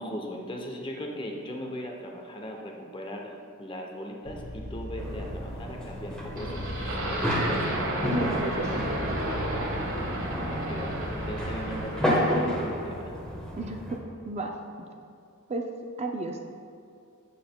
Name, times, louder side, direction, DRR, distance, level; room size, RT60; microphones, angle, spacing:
voice 1, 0.0-7.0 7.3-7.8 10.4-13.1, equal, 20° left, 1 dB, 0.7 m, -39 dB
sound 1, 4.2-11.8, left 1 dB, 60° left, 0.9 m, -40 dB
sound 2, 5.0-14.0, equal, 5° left, 1.1 m, -31 dB
sound 3, 6.3-12.7, right 1 dB, 60° right, 1.2 m, -32 dB
voice 2, 8.1-9.2 13.6-14.9 15.5-15.7 16.0-16.5, right 2 dB, 30° right, 2 dB, 0.4 m, -34 dB
8.5 x 7.7 x 2.2 m, 2.5 s
head